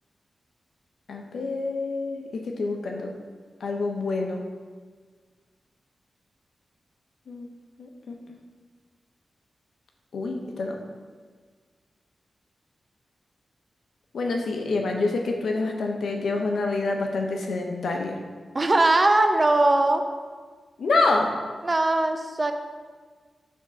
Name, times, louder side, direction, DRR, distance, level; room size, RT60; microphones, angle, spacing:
voice 1, 1.1-3.1 3.6-4.4 7.3-7.5 7.8-8.1 10.1-10.8 14.1-18.2 20.8-21.3, left 3 dB, 85° left, 2 dB, 0.8 m, -27 dB
voice 2, 18.5-20.0 21.6-22.5, right 2 dB, 25° right, 6 dB, 0.5 m, -20 dB
7.4 x 3.6 x 5.7 m, 1.5 s
wide cardioid pair, 130°, 0 cm